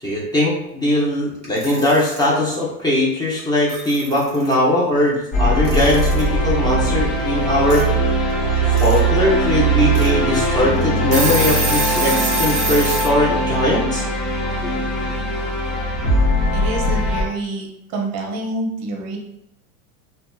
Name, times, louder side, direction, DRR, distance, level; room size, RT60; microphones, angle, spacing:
voice 1, 0.0-7.8 8.7-14.1, left 1 dB, 10° left, -5 dB, 0.5 m, -20 dB
Alarm / Clock, 1.4-2.2 3.4-3.5 3.7-4.5 5.6-6.3 7.7-7.8 8.5-9.0 9.4-9.5 9.9-10.1 10.6-10.7 11.0-13.1, right 3 dB, 15° right, 1.2 m, -25 dB
sound 1, 5.3-17.2, right 1 dB, 50° left, 0.9 m, -20 dB
voice 2, 16.5-17.7 17.9-19.2, right 2 dB, 40° right, 1 dB, 0.6 m, -27 dB
2.7 x 2.2 x 2.2 m, 0.82 s
supercardioid pair, 115°, 44 cm